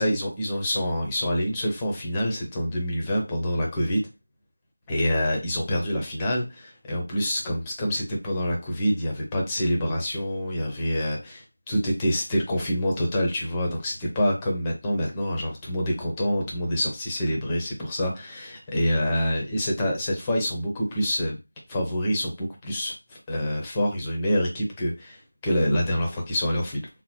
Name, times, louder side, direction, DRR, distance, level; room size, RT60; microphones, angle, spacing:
voice 1, 0.0-4.0 4.9-21.4 21.7-26.9, equal, 10° left, 0 dB, 0.7 m, -26 dB
3.7 x 2.9 x 3.0 m, 0.26 s
figure-of-eight pair, 170°, 0 cm